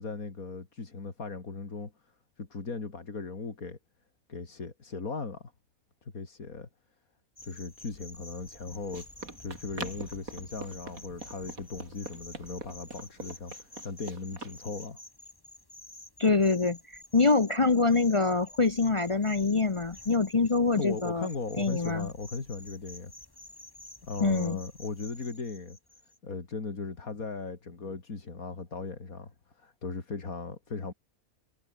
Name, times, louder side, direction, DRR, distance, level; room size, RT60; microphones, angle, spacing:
voice 1, 0.0-1.9 2.4-3.8 4.3-5.5 6.0-6.7 7.4-9.1 9.4-15.0 20.7-23.1 24.0-25.8 26.2-30.9, left 4 dB, 80° left, 3.3 m, -38 dB
sound 1, 7.4-26.2, left 2 dB, 15° left, 2.0 m, -50 dB
Run, 8.4-14.6, right 3 dB, 80° right, 4.2 m, -44 dB
voice 2, 16.2-16.8 17.1-21.3 21.6-22.1 24.2-24.6, left 4 dB, 30° left, 0.6 m, -25 dB
omnidirectional pair, 1.5 m